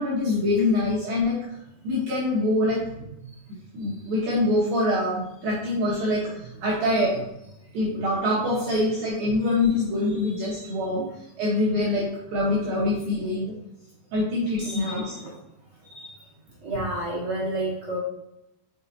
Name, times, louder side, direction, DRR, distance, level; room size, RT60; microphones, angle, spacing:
voice 1, 0.0-1.4 1.8-3.0 3.7-7.3 7.7-11.0 11.4-13.5 14.1-15.1, left 2 dB, 70° right, -6 dB, 2.3 m, -24 dB
voice 2, 10.5-11.1 14.6-15.4 15.9-16.1 16.6-18.0, right 1 dB, 55° right, -8 dB, 1.9 m, -32 dB
6.3 x 6.2 x 2.7 m, 0.86 s
omnidirectional pair, 5.6 m